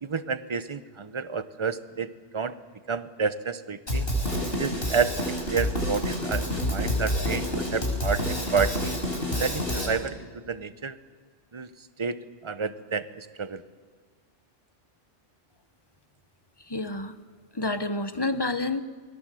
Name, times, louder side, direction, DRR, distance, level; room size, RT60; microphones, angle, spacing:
voice 1, 0.0-2.5 2.9-4.1 4.5-8.9 9.4-11.0 11.5-11.7 12.0-13.6, right 5 dB, 30° right, 12 dB, 0.8 m, -30 dB
Drum kit, 3.9-9.9, left 1 dB, 50° left, 5.8 m, -28 dB
voice 2, 16.6-17.1 17.5-18.8, left 2 dB, 20° left, 10 dB, 1.0 m, -29 dB
28.5 x 21.5 x 7.7 m, 1.5 s
omnidirectional pair, 1.2 m